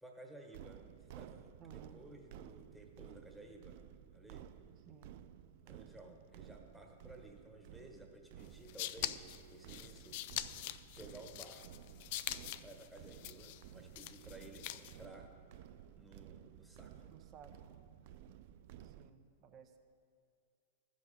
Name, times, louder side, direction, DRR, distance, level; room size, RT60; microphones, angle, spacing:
voice 1, 0.0-3.8 4.1-4.5 5.6-10.2 11.0-11.9 12.6-15.3 15.9-17.1, right 2 dB, 5° right, 1 dB, 1.3 m, -55 dB
sound 1, 0.5-19.1, right 10 dB, 55° right, 0.3 m, -55 dB
voice 2, 1.6-2.0 4.8-5.2 17.1-17.7 18.8-19.8, right 7 dB, 35° right, 5 dB, 0.9 m, -58 dB
sound 2, 8.4-15.0, left 14 dB, 55° left, 0.3 m, -44 dB
14.0 x 5.3 x 5.0 m, 2.4 s
hypercardioid pair, 105°, 0 cm